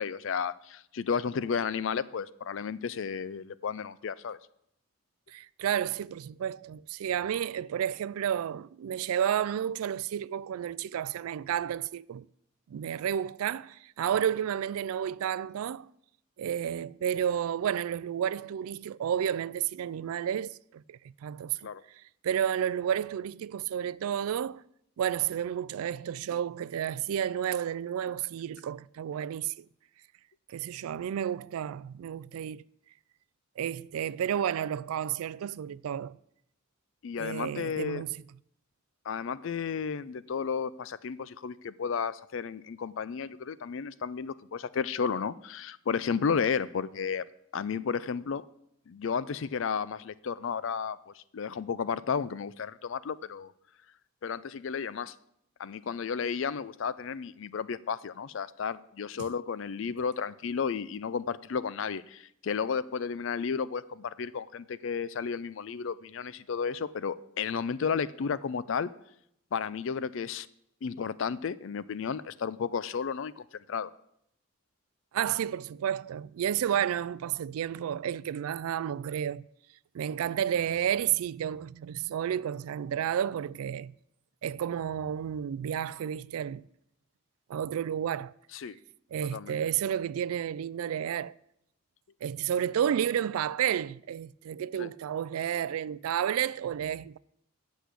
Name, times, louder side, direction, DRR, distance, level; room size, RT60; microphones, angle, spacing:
voice 1, 0.0-4.4 21.6-21.8 37.0-38.0 39.1-47.2 47.5-48.4 48.9-53.5 54.2-55.1 55.6-68.9 69.5-70.5 70.8-73.9 88.5-88.8 89.3-89.6 94.8-94.9, left 6 dB, 60° left, 0.4 m, -33 dB
voice 2, 5.3-12.3 12.7-15.9 16.4-21.7 22.2-24.6 25.0-29.6 30.5-32.6 33.6-36.2 37.2-38.2 75.1-79.4 79.9-83.9 84.4-86.6 87.5-88.3 89.1-91.3 92.2-97.2, right 9 dB, 80° right, 0.3 m, -31 dB
8.1 x 6.2 x 8.2 m
head